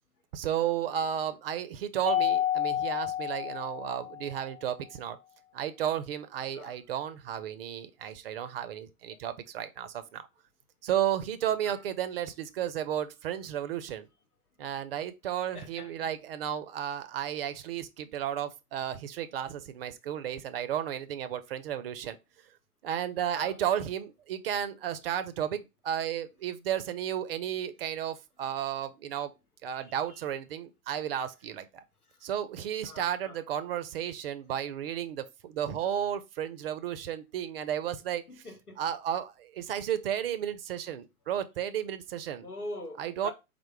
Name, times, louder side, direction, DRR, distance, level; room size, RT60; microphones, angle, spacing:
voice 1, 0.3-5.2 5.5-10.3 10.8-14.1 14.6-22.2 22.8-29.3 29.6-31.8 32.2-38.2 38.8-42.5 43.0-43.3, right 10 dB, 45° right, 0.5 m, -33 dB
Mallet percussion, 2.1-4.5, left 10 dB, ahead, 0.9 m, -30 dB
voice 2, 15.5-16.1 23.3-23.6 29.7-30.2 32.8-33.4 38.3-38.8 42.4-43.3, left 1 dB, 85° left, 0.9 m, -44 dB
4.5 x 2.0 x 4.5 m
figure-of-eight pair, 100°, 44 cm